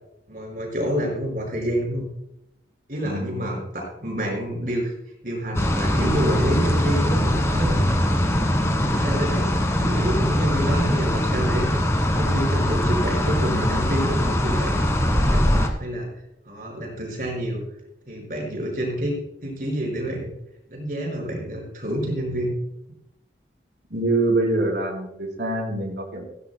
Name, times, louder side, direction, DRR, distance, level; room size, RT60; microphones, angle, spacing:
voice 1, 0.3-2.0 2.9-4.9 5.2-8.5 8.8-14.8 15.1-16.1 16.5-17.6 18.1-19.1 19.4-20.3 20.7-22.5, equal, 50° right, -1 dB, 5.3 m, -28 dB
voice 2, 3.0-3.6 23.9-26.3, right 2 dB, 80° right, -2 dB, 3.7 m, -25 dB
sound 1, 5.5-15.7, equal, 15° left, 1.4 m, -22 dB
17.0 x 16.0 x 2.2 m, 0.83 s
head